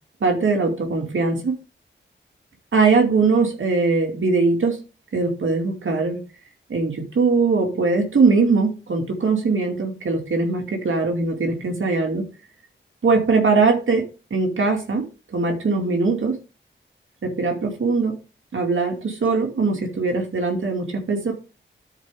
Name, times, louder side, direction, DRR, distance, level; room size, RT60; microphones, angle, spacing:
voice 1, 0.2-1.6 2.7-4.8 5.1-6.2 6.7-12.3 13.0-15.1 15.3-16.4 17.2-18.2 18.5-21.3, right 4 dB, 80° right, 2.6 m, -21 dB
12.5 x 4.7 x 3.6 m
wide cardioid pair, 95°, 20 cm